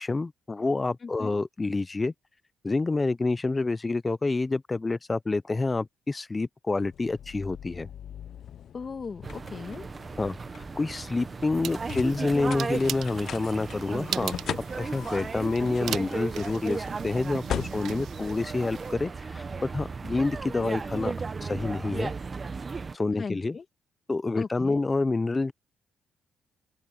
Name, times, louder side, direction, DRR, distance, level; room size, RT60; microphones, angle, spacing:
voice 1, 0.0-2.1 2.6-7.9 10.2-14.3 14.8-17.4 17.7-21.1 21.4-22.1 22.9-23.6 24.1-25.5, left 3 dB, 25° left, 0.7 m, -28 dB
voice 2, 1.0-1.4 8.7-9.9 23.2-23.6 24.4-24.8, left 5 dB, 40° left, 2.4 m, -38 dB
sound 1, 6.8-19.1, left 9 dB, 65° left, 0.7 m, -41 dB
sound 2, 9.2-23.0, right 4 dB, 35° right, 1.0 m, -35 dB
sound 3, 11.6-18.9, right 11 dB, 75° right, 0.7 m, -40 dB
open air
cardioid pair, 90°, 0 cm